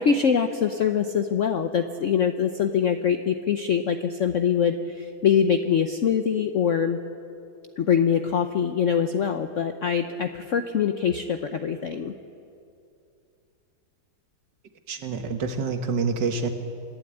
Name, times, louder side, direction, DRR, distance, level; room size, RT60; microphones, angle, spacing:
voice 1, 0.0-7.0 7.8-12.1, left 7 dB, 55° left, 7 dB, 0.9 m, -23 dB
voice 2, 14.9-16.5, right 4 dB, 70° right, 7 dB, 2.0 m, -27 dB
25.5 x 12.0 x 9.8 m, 2.6 s
omnidirectional pair, 2.0 m